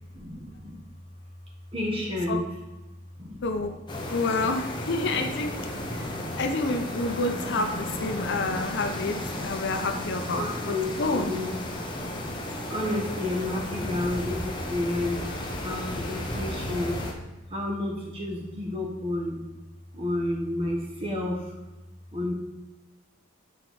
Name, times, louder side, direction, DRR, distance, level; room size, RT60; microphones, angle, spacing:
voice 1, 0.1-0.7 1.7-2.4 3.2-3.4 5.0-6.5 7.3-12.3 12.7-15.2 15.6-16.9 17.5-19.4 19.9-21.5 22.1-22.3, left 1 dB, 25° right, -1 dB, 1.2 m, -32 dB
voice 2, 3.4-3.8 4.1-5.5 5.9-11.3, left 3 dB, 55° left, 5 dB, 0.6 m, -29 dB
sound 1, 3.9-17.1, left 1 dB, 20° left, 0.8 m, -34 dB
6.4 x 4.4 x 3.9 m, 1.1 s
head